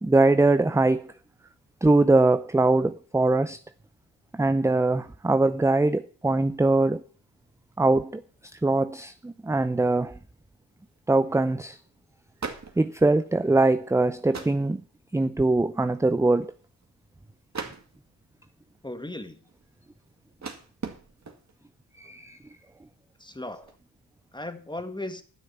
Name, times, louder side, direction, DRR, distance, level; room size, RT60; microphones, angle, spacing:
voice 1, 0.0-1.1 1.8-3.6 4.3-7.0 7.8-8.2 8.5-10.2 11.1-11.8 12.8-14.8 15.1-16.5 22.0-22.4, right 2 dB, 5° right, 0.5 m, -22 dB
sound 1, 8.4-8.7 9.1-9.2 10.6-11.0 11.3-11.4 11.6-11.9 12.2-13.6 14.1-14.8 15.2-15.5 15.9-16.9 17.5-18.3 18.8-21.7 22.2-22.6 22.8-23.9, right 4 dB, 35° right, 2.1 m, -41 dB
voice 2, 18.8-19.4 23.2-23.8 24.3-25.2, left 1 dB, 10° left, 1.9 m, -36 dB
11.5 x 6.5 x 6.9 m
supercardioid pair, 40°, 45 cm